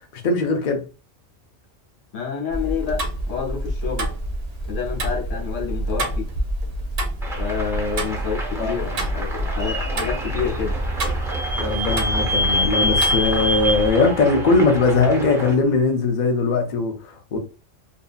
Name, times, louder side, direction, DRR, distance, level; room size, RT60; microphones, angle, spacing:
voice 1, 0.1-0.8 8.5-9.0 11.6-17.4, left 3 dB, 50° left, 0.5 m, -20 dB
voice 2, 2.1-4.1 4.7-6.3 7.4-10.7, left 7 dB, 80° left, 1.2 m, -28 dB
Tick-tock, 2.5-13.9, right 1 dB, 65° right, 0.4 m, -28 dB
sound 1, 7.2-15.5, right 2 dB, 5° right, 0.4 m, -33 dB
Vehicle / Squeak, 9.9-15.5, equal, 30° right, 0.9 m, -26 dB
2.6 x 2.6 x 2.3 m
omnidirectional pair, 1.3 m